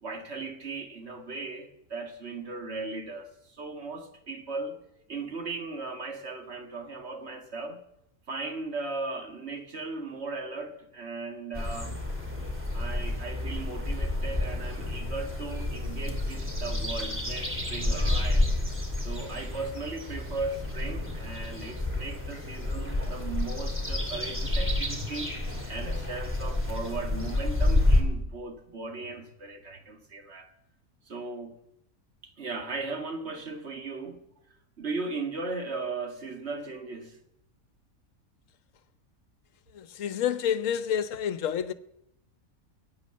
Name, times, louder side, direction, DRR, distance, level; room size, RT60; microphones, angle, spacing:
voice 1, 0.0-4.8 5.1-7.8 8.3-12.0 12.7-18.5 19.0-25.4 25.7-30.5 31.0-31.6 32.2-34.2 34.8-37.2, right 3 dB, 45° right, 2.0 m, -37 dB
sound 1, 11.5-28.0, left 2 dB, 10° right, 2.8 m, -29 dB
voice 2, 39.7-41.7, left 9 dB, 65° left, 1.2 m, -29 dB
20.5 x 9.2 x 7.6 m
omnidirectional pair, 1.5 m